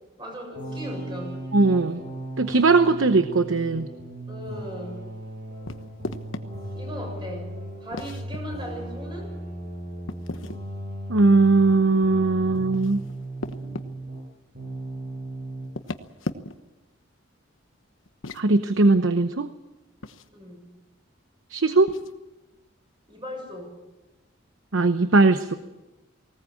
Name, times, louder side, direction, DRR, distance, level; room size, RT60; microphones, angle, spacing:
voice 1, 0.2-1.4 4.3-5.0 6.7-7.5 7.8-9.4 20.3-20.7 23.1-23.7, equal, 25° right, 2 dB, 7.1 m, -37 dB
sound 1, 0.5-14.3 14.5-15.7, right 1 dB, 50° right, 7.0 m, -37 dB
voice 2, 1.5-2.0 2.4-3.9 11.1-13.0 18.3-19.5 21.5-21.9 24.7-25.5, right 3 dB, 85° right, 10 dB, 0.9 m, -19 dB
sound 2, 5.6-6.4 7.9-8.4 10.1-10.6 12.5-13.9 15.6-16.7 18.1-18.4 20.0-20.3 21.9-22.1, left 2 dB, 85° left, 1.2 m, -36 dB
19.5 x 18.0 x 8.7 m, 1.1 s
head